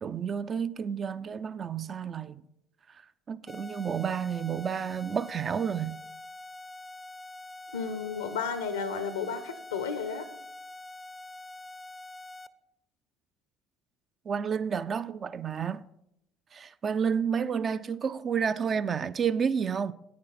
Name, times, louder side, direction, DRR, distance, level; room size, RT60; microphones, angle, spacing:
voice 1, 0.0-2.4 3.3-6.0 14.3-15.9 16.5-19.9, right 7 dB, 40° right, 0.4 m, -30 dB
sound 1, 3.5-12.5, left 2 dB, 20° left, 0.5 m, -45 dB
voice 2, 7.7-10.2, left 6 dB, 85° left, 0.7 m, -33 dB
9.5 x 9.0 x 4.2 m
hypercardioid pair, 60°, 0 cm